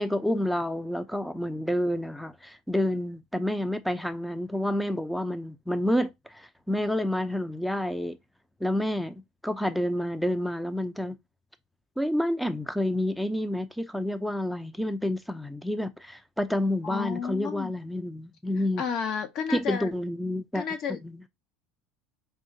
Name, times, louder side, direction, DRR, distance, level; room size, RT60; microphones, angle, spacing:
voice 1, 0.0-8.2 8.6-11.2 12.0-18.8 19.5-20.6 20.9-21.2, left 1 dB, ahead, 0.6 m, -29 dB
voice 2, 16.8-17.7 18.8-19.9 20.5-21.0, left 7 dB, 55° left, 0.9 m, -31 dB
4.6 x 2.9 x 2.7 m
hypercardioid pair, 80°, 0 cm